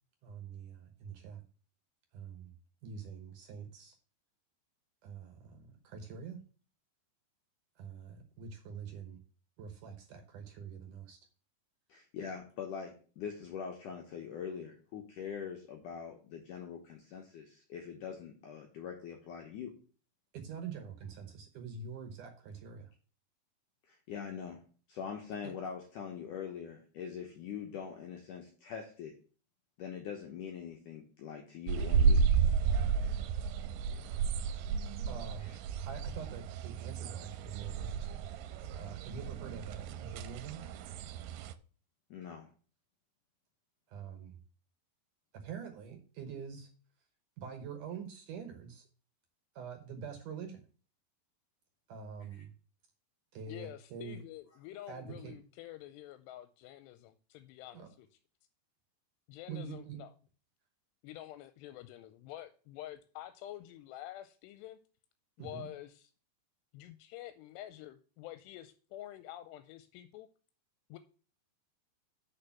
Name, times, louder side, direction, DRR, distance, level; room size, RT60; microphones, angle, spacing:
voice 1, 0.2-1.4 2.1-2.5 2.8-4.0 5.0-6.4 7.8-9.2 9.6-11.2 20.3-22.9 25.4-25.5 35.1-35.6 35.8-38.3 38.7-40.6 43.9-44.4 45.3-46.7 47.4-48.9 49.6-50.6 51.9-52.5 53.3-54.2 54.9-55.3 57.7-57.9 59.5-60.0 65.4-65.7, right 6 dB, 65° right, 5 dB, 2.1 m, -45 dB
voice 2, 11.9-19.7 23.9-24.6 24.9-29.1 29.8-32.2 35.4-35.6 42.1-42.5 52.3-52.4, left 7 dB, 70° left, 2 dB, 2.0 m, -43 dB
sound 1, 31.7-41.5, right 6 dB, 85° right, 2.6 m, -32 dB
voice 3, 53.5-58.1 59.3-60.1 61.0-64.8 65.4-66.1 66.7-70.3 70.9-71.0, left 14 dB, 85° left, 10 dB, 2.7 m, -48 dB
6.8 x 5.7 x 7.1 m, 0.40 s
omnidirectional pair, 4.8 m